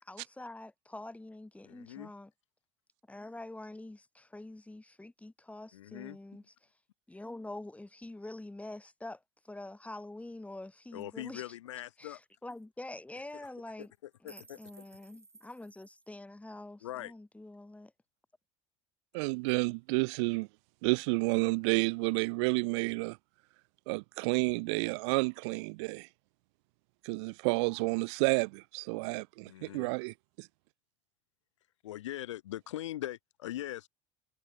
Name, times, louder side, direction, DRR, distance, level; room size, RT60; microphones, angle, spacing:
voice 1, 0.0-2.3 3.1-6.4 7.1-11.5 12.0-13.9 14.2-17.9, left 2 dB, 10° left, 6.3 m, -46 dB
voice 2, 1.6-2.1 5.7-6.2 10.9-12.2 13.8-14.6 16.8-17.1 29.4-29.9 31.8-33.9, left 14 dB, 85° left, 1.0 m, -41 dB
sound 1, 11.4-11.5 11.7-11.8 12.0-12.2 12.5-12.6 13.3-13.5 13.8-16.1, right 4 dB, 20° right, 3.1 m, -58 dB
voice 3, 19.1-20.5 20.8-23.2 23.9-26.1 27.0-30.5, right 29 dB, 70° right, 0.6 m, -30 dB
hypercardioid pair, 80°, 15 cm